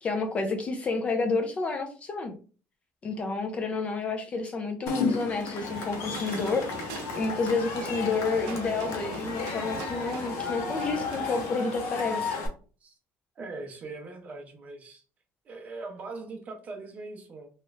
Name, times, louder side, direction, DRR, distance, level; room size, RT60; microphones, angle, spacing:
voice 1, 0.0-2.4 3.0-6.6 6.9-12.4, left 3 dB, 25° left, 6 dB, 0.4 m, -30 dB
Cheering / Crowd, 4.9-12.5, left 5 dB, 70° left, 0.8 m, -33 dB
sound 1, 5.6-11.5, right 7 dB, 90° right, 0.6 m, -42 dB
voice 2, 13.4-15.0 15.4-17.5, right 3 dB, 30° right, 3 dB, 0.6 m, -41 dB
3.0 x 2.3 x 3.1 m, 0.38 s
cardioid pair, 165°, 5 cm